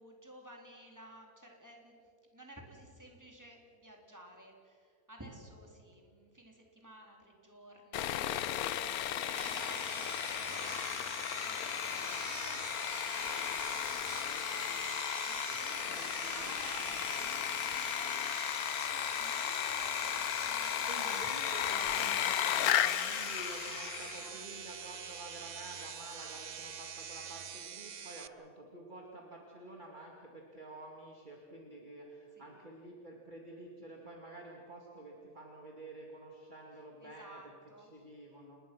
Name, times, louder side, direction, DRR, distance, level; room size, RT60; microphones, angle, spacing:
voice 1, 0.0-2.0 2.3-13.5 13.7-14.7 15.1-18.2 18.9-21.4 24.2-24.4 32.4-32.6 37.0-37.9, right 1 dB, 10° right, 0 dB, 3.8 m, -54 dB
Sawing, 7.9-24.4, left 11 dB, 75° left, 1.2 m, -35 dB
sound 1, 9.3-28.3, right 7 dB, 50° right, 0.5 m, -45 dB
voice 2, 15.9-16.5 16.8-17.0 20.8-37.4 37.8-38.6, right 2 dB, 30° right, -1 dB, 2.5 m, -49 dB
29.5 x 20.0 x 6.2 m, 2.4 s
omnidirectional pair, 1.6 m